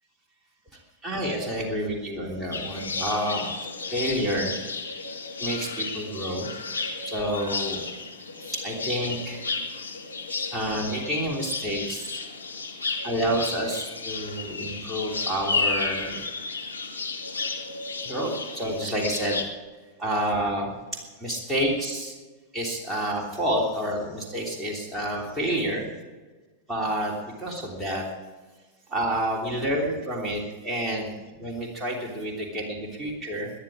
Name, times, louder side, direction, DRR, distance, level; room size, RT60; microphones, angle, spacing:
voice 1, 1.0-3.5 3.9-4.5 5.4-6.5 7.0-7.8 8.4-9.5 10.5-12.2 13.0-16.2 18.0-19.4 20.0-20.7 21.2-22.2 22.5-25.9 26.7-27.1 27.4-28.0 28.9-33.5, equal, 5° right, -3 dB, 3.2 m, -29 dB
sound 1, 2.5-19.4, left 4 dB, 80° left, 1.7 m, -33 dB
20.0 x 10.5 x 4.9 m, 1.3 s
figure-of-eight pair, 90°, 0 cm